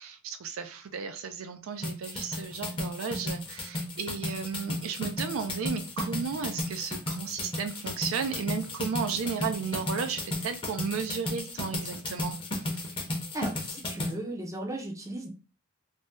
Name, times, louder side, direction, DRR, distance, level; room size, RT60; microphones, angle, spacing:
voice 1, 0.0-12.4, right 6 dB, 70° right, 0.4 m, -34 dB
sound 1, 1.8-14.1, left 1 dB, 25° left, 0.7 m, -34 dB
voice 2, 13.3-15.3, right 1 dB, 15° right, 0.5 m, -36 dB
2.6 x 2.1 x 3.4 m
head